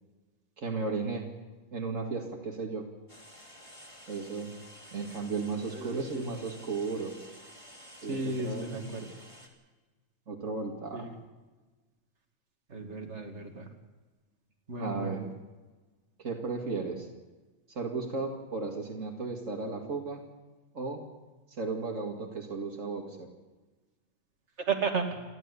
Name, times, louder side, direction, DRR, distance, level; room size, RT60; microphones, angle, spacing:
voice 1, 0.6-1.3 1.7-2.9 4.1-4.6 4.9-7.1 8.0-9.0 10.3-11.1 14.8-15.2 16.2-17.1 17.7-20.2 20.7-21.0 21.6-23.3, right 4 dB, 80° right, 2 dB, 2.6 m, -35 dB
sound 1, 3.1-9.5, equal, 25° left, 2.9 m, -51 dB
voice 2, 5.7-6.4 8.1-9.2 10.9-11.1 12.7-13.7 14.7-15.3 24.7-25.2, right 4 dB, 60° right, 3 dB, 2.8 m, -34 dB
29.5 x 12.5 x 8.2 m, 1.2 s
omnidirectional pair, 1.3 m